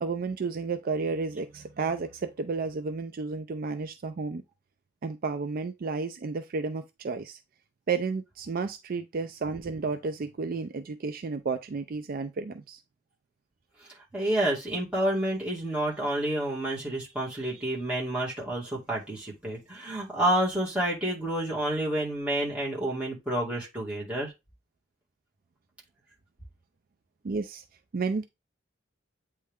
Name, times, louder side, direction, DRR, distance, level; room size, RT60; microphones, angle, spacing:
voice 1, 0.0-4.4 5.0-7.4 7.9-12.8 27.2-27.6 27.9-28.2, right 4 dB, 45° right, 0.4 m, -32 dB
voice 2, 14.1-24.3, right 1 dB, 5° right, 2.1 m, -29 dB
8.3 x 3.3 x 3.5 m
head